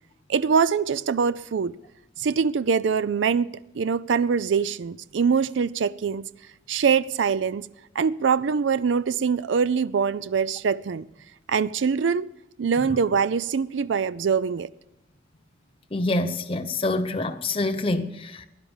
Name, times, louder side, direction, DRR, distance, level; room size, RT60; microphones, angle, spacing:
voice 1, 0.3-1.8 2.2-6.3 6.7-7.7 8.0-11.0 11.5-12.3 12.6-14.7, right 6 dB, 75° right, 0.4 m, -23 dB
voice 2, 15.9-18.4, left 2 dB, 30° left, 0.8 m, -26 dB
16.0 x 11.5 x 7.2 m
head